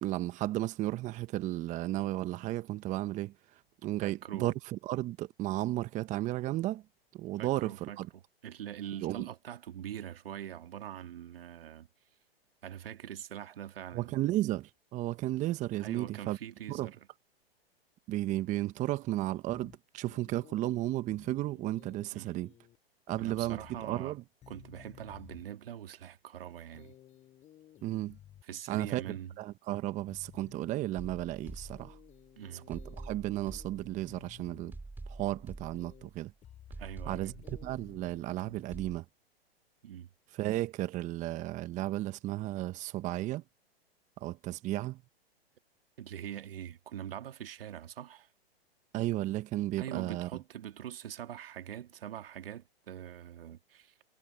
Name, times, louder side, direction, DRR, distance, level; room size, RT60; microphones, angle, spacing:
voice 1, 0.0-3.3 3.8-6.8 7.1-8.1 9.0-9.3 13.9-16.4 16.7-16.9 18.1-22.5 23.1-23.6 23.9-24.2 27.8-28.2 28.7-29.0 29.4-32.0 32.7-34.7 35.1-36.3 37.1-39.0 40.3-43.4 44.2-45.0 48.9-50.3, right 15 dB, 25° right, 1.2 m, -34 dB
voice 2, 4.0-4.5 7.4-11.9 12.6-14.1 15.8-17.0 22.1-22.5 23.2-24.2 24.5-26.9 28.4-29.3 32.4-32.7 36.8-37.3 39.8-40.1 46.0-48.3 49.8-53.9, right 10 dB, 65° right, 2.3 m, -43 dB
sound 1, 19.5-19.8 20.1-20.8 21.1-22.1 22.4-22.8 23.1-24.1 24.4-25.4 26.7-28.4 29.1-29.4 30.1-30.8 31.1-33.1 33.4-34.8 35.7-36.1 36.4-36.8 37.1-38.6, left 11 dB, 25° left, 6.0 m, -55 dB
sound 2, 31.0-32.3 32.7-34.3 34.7-36.3 36.7-38.3 38.7-39.0, right 3 dB, 5° right, 4.6 m, -47 dB
hypercardioid pair, 120°, 31 cm